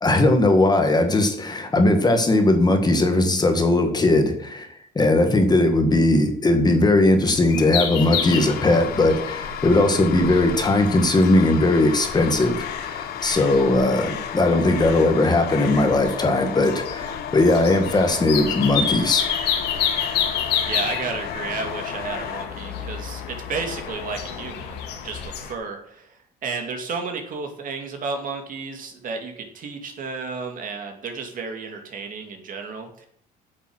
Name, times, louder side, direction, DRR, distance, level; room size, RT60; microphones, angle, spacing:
voice 1, 0.0-4.7 5.0-19.2, left 2 dB, 25° left, 5 dB, 1.8 m, -19 dB
sound 1, 7.2-25.5, left 8 dB, 85° left, 1.8 m, -30 dB
sound 2, 7.7-22.5, left 9 dB, 65° left, 1.0 m, -33 dB
voice 2, 20.7-33.1, right 4 dB, 55° right, 4 dB, 2.5 m, -32 dB
8.7 x 7.2 x 6.3 m, 0.66 s
cardioid pair, 110°, 17 cm